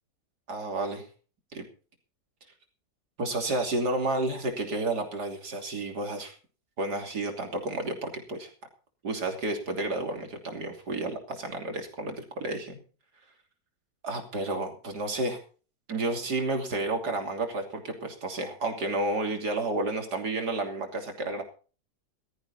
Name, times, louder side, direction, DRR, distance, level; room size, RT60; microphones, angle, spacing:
voice 1, 0.5-1.1 1.5-1.6 3.2-6.3 6.8-8.5 9.0-12.8 14.0-15.4 15.9-21.4, right 2 dB, 75° right, 4 dB, 3.5 m, -31 dB
15.5 x 13.5 x 4.2 m, 0.38 s
omnidirectional pair, 1.7 m